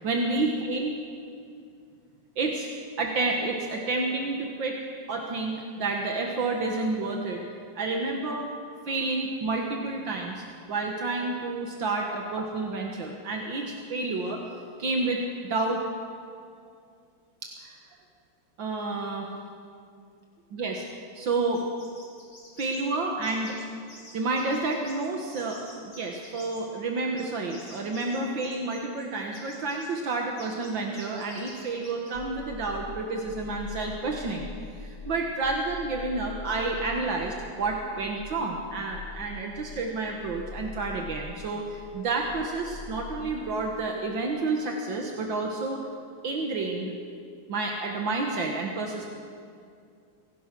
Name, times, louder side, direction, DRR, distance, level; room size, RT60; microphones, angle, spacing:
voice 1, 0.0-1.0 2.4-2.7 3.0-7.4 7.8-8.5 8.9-14.4 14.8-15.8 17.4-17.8 18.6-19.3 20.5-20.8 21.2-21.6 22.6-23.6 24.1-34.5 34.8-45.8 46.2-46.9 47.5-49.1, right 3 dB, 75° right, 1 dB, 2.3 m, -30 dB
sound 1, 21.5-22.8 23.2-23.6 23.9-25.1 25.3-26.6 27.0-29.0 29.3-29.9 30.4-30.7 30.9-32.1, left 1 dB, 75° left, 5.8 m, -49 dB
sound 2, 32.1-43.3, left 3 dB, 40° left, 2.0 m, -43 dB
25.5 x 17.0 x 6.2 m, 2.3 s
omnidirectional pair, 2.1 m